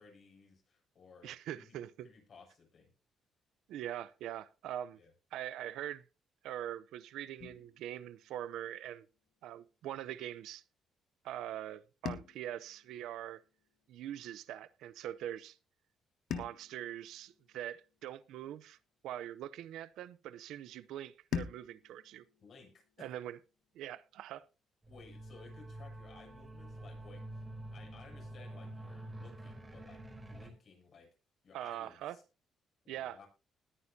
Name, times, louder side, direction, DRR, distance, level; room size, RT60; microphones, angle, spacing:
voice 1, 0.0-1.7 2.0-2.9 4.9-5.1 22.4-23.1 24.9-27.4 27.7-31.1 31.4-32.2 32.8-33.3, left 4 dB, 55° left, 7.5 m, -58 dB
voice 2, 1.2-1.9 3.7-5.0 5.3-6.0 6.4-9.1 9.4-10.6 11.2-13.4 13.9-15.6 16.3-18.8 19.0-22.2 23.0-23.4 23.7-24.4 31.5-32.2 32.9-33.2, right 11 dB, 85° right, 0.6 m, -43 dB
sound 1, 7.4-9.6 12.0-14.4 16.3-18.8 21.3-23.9, left 7 dB, 70° left, 1.3 m, -46 dB
sound 2, 24.8-30.5, right 1 dB, 20° right, 3.7 m, -47 dB
20.0 x 9.6 x 2.8 m
cardioid pair, 90°, 0 cm